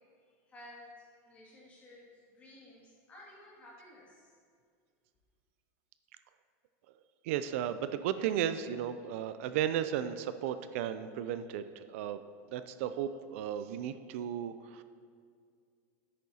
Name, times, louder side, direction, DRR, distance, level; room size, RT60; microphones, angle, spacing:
voice 1, 0.4-4.3, left 1 dB, 15° left, -6 dB, 2.2 m, -54 dB
voice 2, 7.2-11.6 11.9-12.2 12.5-14.8, right 10 dB, 55° right, 11 dB, 0.4 m, -34 dB
10.0 x 8.4 x 2.8 m, 2.2 s
supercardioid pair, 170°, 8 cm